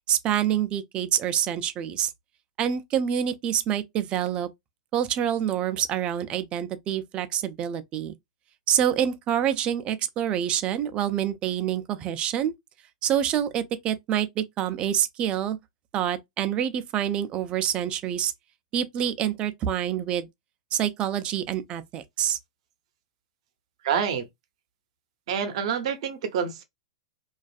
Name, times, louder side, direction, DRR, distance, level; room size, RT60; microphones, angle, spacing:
voice 1, 0.1-2.1 2.6-4.5 4.9-8.1 8.7-12.5 13.0-15.6 15.9-18.3 18.7-20.3 20.7-22.4, right 10 dB, 30° right, 0.4 m, -26 dB
voice 2, 23.8-24.3 25.3-26.6, right 7 dB, 60° right, 0.7 m, -27 dB
2.5 x 2.3 x 2.3 m
hypercardioid pair, 125°, 4 cm